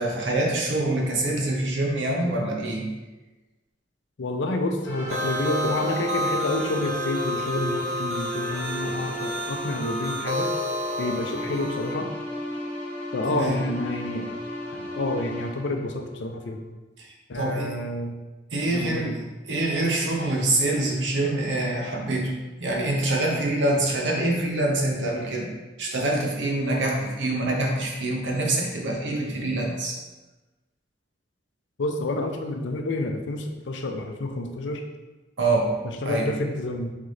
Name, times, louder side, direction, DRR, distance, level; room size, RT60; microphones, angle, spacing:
voice 1, 0.0-2.9 13.3-13.6 17.0-17.7 18.5-19.2 19.5-22.3 22.6-25.5 25.8-29.9 35.4-35.8 36.0-36.3, right 2 dB, 80° right, -1 dB, 0.9 m, -25 dB
voice 2, 4.2-10.5 11.0-12.1 13.1-14.3 14.7-16.6 17.3-18.2 18.7-19.2 31.8-34.8 36.0-36.9, left 2 dB, 75° left, 4 dB, 0.5 m, -29 dB
sound 1, 4.8-16.7, equal, 10° left, 1.0 m, -35 dB
sound 2, 5.1-11.9, left 1 dB, 35° right, 0.6 m, -30 dB
3.7 x 3.2 x 3.8 m, 1.1 s
head